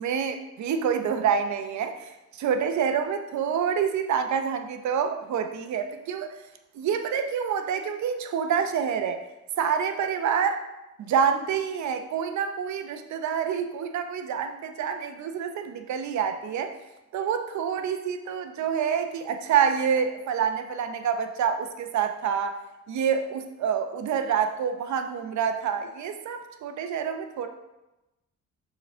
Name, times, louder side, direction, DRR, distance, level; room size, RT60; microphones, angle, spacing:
voice 1, 0.0-6.3 6.7-9.2 9.6-10.6 11.0-16.7 17.1-22.6 22.9-27.5, right 7 dB, 70° right, 7 dB, 0.8 m, -27 dB
6.8 x 4.0 x 4.3 m, 0.98 s
cardioid pair, 90°, 30 cm